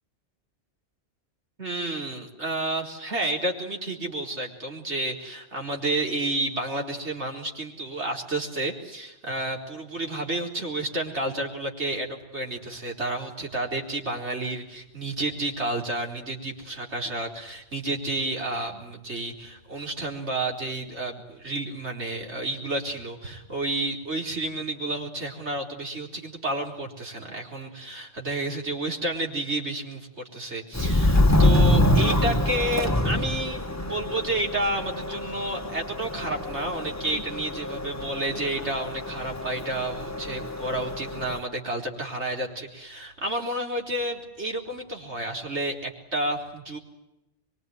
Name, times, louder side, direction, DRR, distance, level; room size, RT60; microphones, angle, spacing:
voice 1, 1.6-46.8, right 2 dB, 70° right, 1 dB, 4.6 m, -31 dB
Subway metro underground, 30.7-41.4, left 1 dB, 15° left, 1.7 m, -25 dB
24.5 x 24.0 x 9.4 m, 0.92 s
omnidirectional pair, 1.2 m